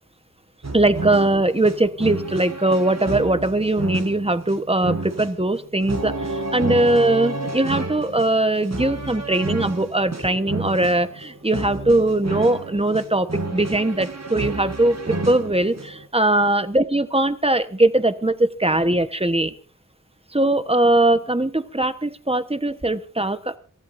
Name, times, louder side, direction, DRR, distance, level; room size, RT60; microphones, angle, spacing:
sound 1, 0.6-16.1, right 3 dB, 55° right, 1.7 m, -31 dB
voice 1, 0.7-19.5 20.3-23.5, right 2 dB, 20° right, 10 dB, 1.3 m, -20 dB
27.5 x 14.5 x 2.7 m, 0.38 s
wide cardioid pair, 45°, 32 cm